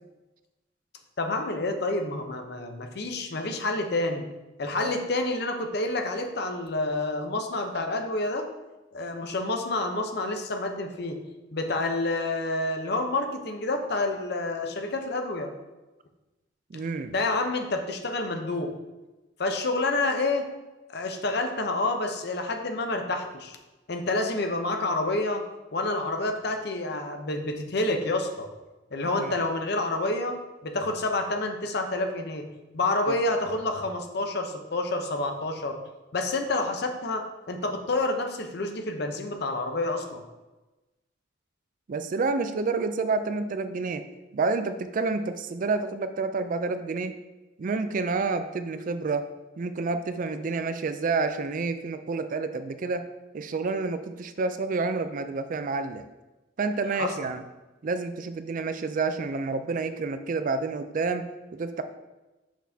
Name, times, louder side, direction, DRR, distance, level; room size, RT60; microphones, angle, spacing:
voice 1, 1.2-4.3 4.6-8.5 8.9-11.2 11.5-15.5 17.1-18.7 19.4-20.5 20.9-23.6 23.9-25.4 25.7-28.5 28.9-30.4 30.6-32.5 32.7-35.8 36.1-40.2 57.0-57.3, left 2 dB, 60° left, 5 dB, 0.8 m, -28 dB
voice 2, 16.7-17.1 29.1-29.3 33.1-33.2 41.9-44.1 44.3-47.2 47.6-49.3 49.6-53.1 53.3-56.0 56.6-57.4 57.8-61.8, right 4 dB, 45° right, 9 dB, 0.4 m, -29 dB
6.3 x 6.1 x 2.7 m, 1.1 s
head